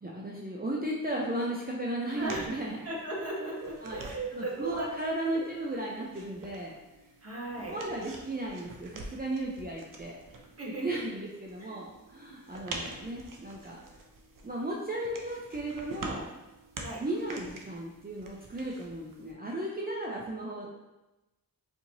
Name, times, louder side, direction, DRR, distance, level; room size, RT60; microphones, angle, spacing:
voice 1, 0.0-2.8 3.8-4.0 4.3-6.7 7.7-10.1 10.8-13.8 14.4-16.3 17.0-20.8, right 1 dB, 25° right, -3 dB, 0.6 m, -35 dB
sound 1, 2.1-19.3, right 3 dB, 65° right, 0.6 m, -47 dB
voice 2, 2.2-2.5 2.8-5.1 5.3-5.5 6.4-6.5 7.2-7.8 10.6-11.0 11.6-11.7 16.8-17.0, right 2 dB, 40° right, -4 dB, 1.3 m, -37 dB
4.3 x 2.8 x 2.7 m, 1.0 s
cardioid pair, 50°, 35 cm